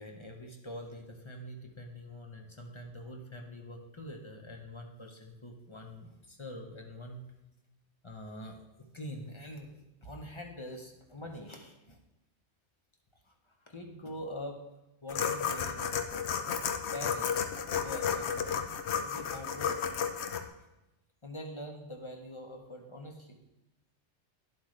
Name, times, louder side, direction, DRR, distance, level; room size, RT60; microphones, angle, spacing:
voice 1, 0.0-7.2 8.0-12.0 13.2-13.3 13.6-14.6 15.0-15.9 16.9-17.5 17.8-19.8 21.2-23.4, left 1 dB, 25° left, 2 dB, 0.9 m, -44 dB
sound 1, 15.1-20.4, left 7 dB, 70° left, 1.0 m, -32 dB
11.5 x 7.7 x 3.3 m, 0.96 s
omnidirectional pair, 1.2 m